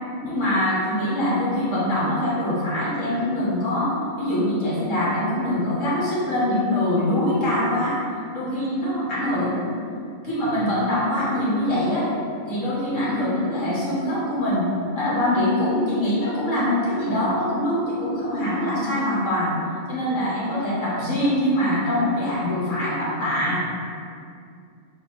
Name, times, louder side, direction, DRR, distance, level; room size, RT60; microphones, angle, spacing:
voice 1, 0.2-8.0 8.3-9.6 10.2-12.1 12.5-14.6 14.9-19.5 19.9-23.6, left 1 dB, 60° left, -7 dB, 1.5 m, -23 dB
4.1 x 2.6 x 4.2 m, 2.4 s
omnidirectional pair, 1.5 m